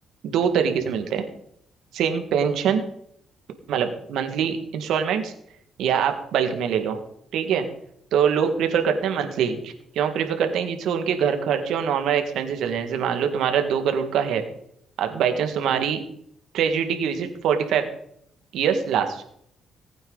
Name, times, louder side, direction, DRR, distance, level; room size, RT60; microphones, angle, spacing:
voice 1, 0.2-1.3 1.9-2.8 3.7-5.3 5.8-7.0 7.3-7.7 8.1-14.4 15.0-16.0 16.5-17.9 18.5-19.5, right 7 dB, 80° right, 6 dB, 1.9 m, -24 dB
19.0 x 9.0 x 4.0 m, 0.71 s
cardioid pair, 90°, 0 cm